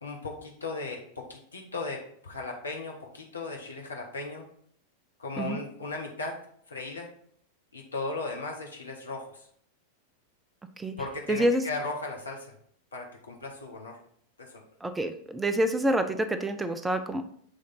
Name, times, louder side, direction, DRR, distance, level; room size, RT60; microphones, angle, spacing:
voice 1, 0.0-4.5 5.2-6.4 6.7-7.1 7.7-9.5 11.0-12.5 12.9-14.0 14.4-14.6, left 3 dB, 75° left, 1 dB, 1.0 m, -37 dB
voice 2, 11.3-11.6 14.8-17.2, right 1 dB, 10° right, 9 dB, 0.5 m, -27 dB
8.0 x 3.2 x 3.9 m, 0.64 s
figure-of-eight pair, 90°, 0 cm